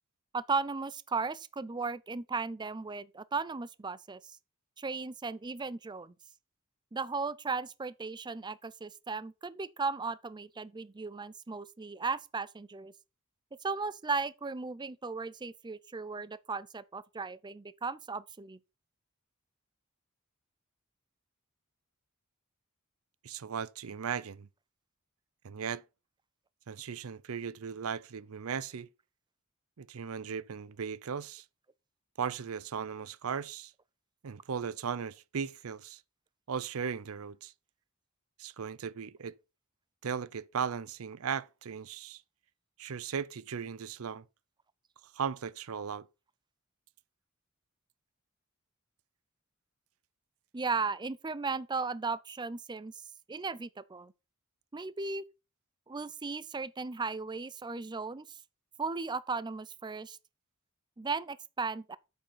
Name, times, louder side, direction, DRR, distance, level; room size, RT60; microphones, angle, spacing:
voice 1, 0.3-4.2 4.8-6.1 6.9-12.9 13.6-18.6 50.5-52.9 53.3-54.1 54.7-55.3 55.9-58.3 58.8-60.2 61.0-62.0, right 4 dB, 20° right, 0.5 m, -36 dB
voice 2, 23.2-24.5 25.4-25.8 26.7-28.9 29.8-31.4 32.2-33.7 34.2-36.0 36.5-37.5 38.4-39.3 40.0-42.2 42.8-44.2 45.1-46.1, right 6 dB, 75° right, 0.6 m, -37 dB
8.5 x 5.6 x 5.6 m
head